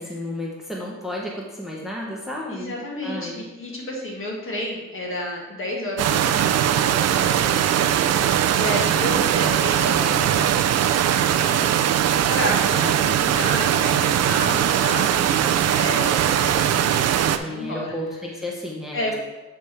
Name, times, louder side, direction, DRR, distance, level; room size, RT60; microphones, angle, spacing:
voice 1, 0.0-2.7 3.0-3.4 8.7-9.3 12.8-13.3 17.3-19.1, left 1 dB, ahead, -3 dB, 1.1 m, -32 dB
voice 2, 2.5-10.6 11.1-11.9 12.3-17.9 18.9-19.1, left 1 dB, 45° left, -2 dB, 1.9 m, -31 dB
sound 1, 6.0-17.4, right 10 dB, 60° right, 0.5 m, -20 dB
8.3 x 3.5 x 4.4 m, 1.1 s
cardioid pair, 90°, 30 cm